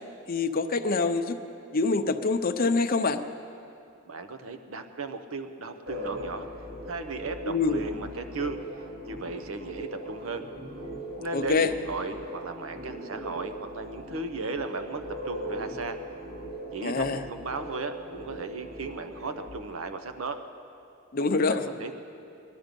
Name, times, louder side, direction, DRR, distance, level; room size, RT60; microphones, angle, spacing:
voice 1, 0.3-1.4 1.7-3.2 7.5-7.8 11.3-11.7 16.8-17.2 21.1-21.7, left 4 dB, 45° left, 7 dB, 0.7 m, -25 dB
voice 2, 4.1-6.5 6.9-8.6 9.0-10.4 11.2-16.0 16.7-20.4 21.5-21.9, right 3 dB, 80° right, 8 dB, 0.9 m, -36 dB
sound 1, 5.8-19.5, right 1 dB, 50° right, 2.6 m, -40 dB
20.5 x 12.0 x 5.3 m, 2.6 s
head